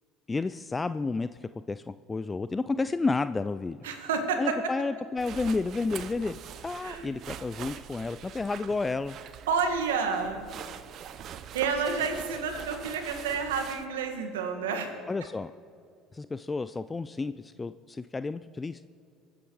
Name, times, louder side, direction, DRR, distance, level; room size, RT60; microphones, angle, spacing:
voice 1, 0.3-3.9 4.4-9.2 15.1-15.5 16.1-18.8, left 3 dB, 20° left, 13 dB, 0.4 m, -31 dB
voice 2, 3.8-4.6 6.8-7.1 9.5-10.4 11.5-15.0, right 5 dB, 85° right, 5 dB, 1.8 m, -29 dB
sound 1, 5.2-13.9, right 9 dB, 55° right, 0.8 m, -43 dB
24.0 x 8.9 x 4.8 m, 2.4 s
hypercardioid pair, 70°, 0 cm